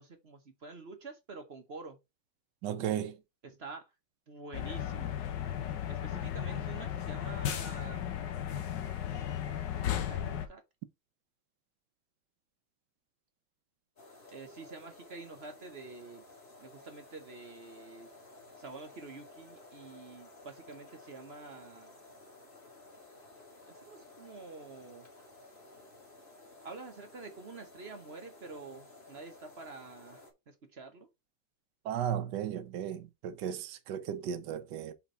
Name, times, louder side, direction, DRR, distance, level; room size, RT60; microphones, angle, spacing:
voice 1, 0.0-2.0 3.4-3.9 4.3-5.2 5.9-8.0 9.4-10.6 14.3-16.3 16.6-18.1 18.6-21.9 23.7-25.1 26.6-31.1, right 3 dB, 40° right, 1.0 m, -48 dB
voice 2, 2.6-3.2 31.8-34.9, right 9 dB, 65° right, 1.4 m, -35 dB
sound 1, 4.5-10.5, left 10 dB, 65° left, 1.5 m, -35 dB
sound 2, 14.0-30.3, left 2 dB, 25° left, 2.1 m, -55 dB
5.8 x 3.5 x 5.5 m
omnidirectional pair, 2.1 m